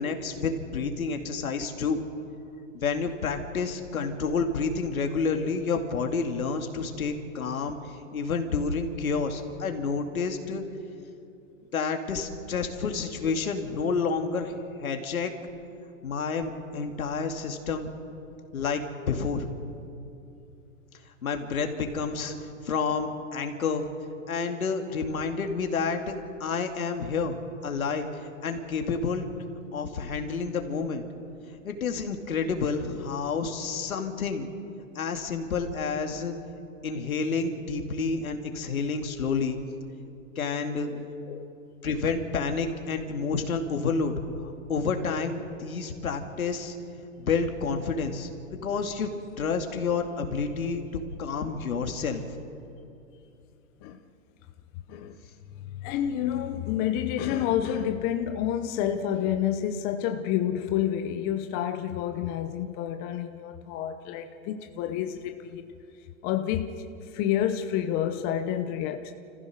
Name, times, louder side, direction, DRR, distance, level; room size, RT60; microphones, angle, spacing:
voice 1, 0.0-2.0 2.7-7.8 8.1-10.6 11.7-15.3 16.0-17.9 18.5-19.6 21.2-23.9 24.3-26.1 26.4-27.4 27.6-28.1 28.4-29.3 29.7-31.0 31.6-34.5 35.0-36.3 36.8-39.6 40.4-40.9 41.8-44.1 44.4-46.7 47.2-48.3 48.6-49.1 49.4-50.8 51.2-52.2, left 5 dB, 80° left, 5 dB, 2.5 m, -29 dB
voice 2, 40.8-41.5 53.8-54.0 54.9-55.1 55.6-65.7 66.2-66.9 67.1-69.1, left 10 dB, 25° left, 6 dB, 0.8 m, -29 dB
29.5 x 15.0 x 6.5 m, 2.7 s
hypercardioid pair, 140°, 41 cm